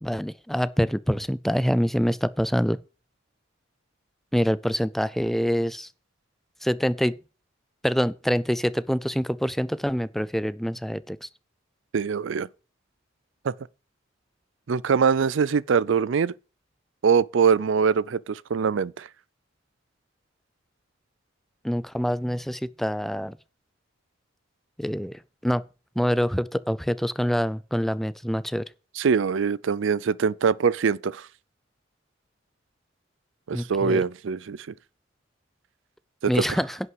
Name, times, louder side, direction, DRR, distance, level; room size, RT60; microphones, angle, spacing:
voice 1, 0.0-2.8 4.3-5.9 6.6-7.1 7.8-11.3 21.6-23.4 24.8-25.1 25.4-25.6 26.0-28.6 33.5-34.0 36.3-36.8, equal, ahead, 0.4 m, -25 dB
voice 2, 11.9-12.5 13.4-13.5 14.7-16.3 17.0-19.1 29.0-31.3 33.5-34.7 36.2-36.6, right 6 dB, 75° right, 0.5 m, -23 dB
11.0 x 5.7 x 7.9 m
head